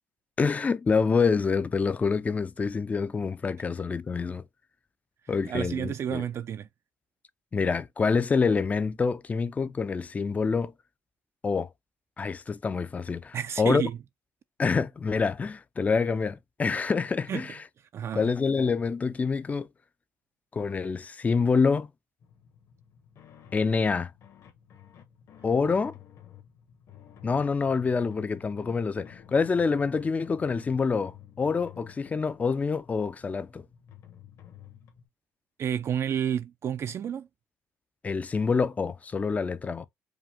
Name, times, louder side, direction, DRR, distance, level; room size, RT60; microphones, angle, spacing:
voice 1, 0.4-4.4 5.3-6.2 7.5-10.7 11.4-11.7 12.2-13.8 14.6-17.6 18.1-19.7 20.5-21.9 23.5-24.1 25.4-25.9 27.2-33.6 38.0-39.9, left 5 dB, 25° left, 0.4 m, -26 dB
voice 2, 5.5-6.7 13.3-14.0 17.3-17.4 17.9-18.3 35.6-37.3, right 9 dB, 45° right, 0.4 m, -30 dB
sound 1, 22.2-35.1, left 10 dB, 55° left, 1.5 m, -51 dB
5.0 x 2.3 x 3.5 m
cardioid pair, 95°, 6 cm